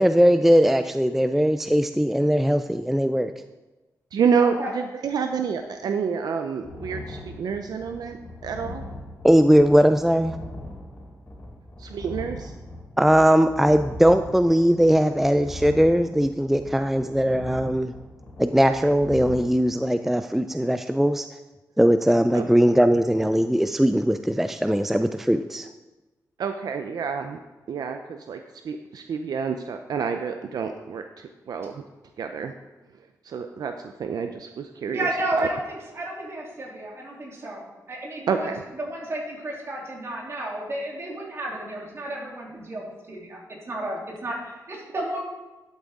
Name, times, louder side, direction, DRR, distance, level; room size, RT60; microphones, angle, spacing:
voice 1, 0.0-3.3 9.2-10.4 13.0-17.9 18.4-21.3 21.8-25.7, equal, 5° right, 9 dB, 0.3 m, -20 dB
voice 2, 4.1-8.8 11.8-12.5 22.3-22.5 26.4-27.4 27.7-31.8 32.2-32.5 33.2-35.1 35.4-35.5 38.3-38.6, right 6 dB, 80° right, 6 dB, 0.6 m, -28 dB
sound 1, 6.6-19.4, left 1 dB, 35° left, 3.2 m, -40 dB
voice 3, 34.9-38.5 38.8-45.2, right 1 dB, 45° right, -3 dB, 3.1 m, -32 dB
11.5 x 8.2 x 3.7 m, 1.1 s
wide cardioid pair, 115°, 7 cm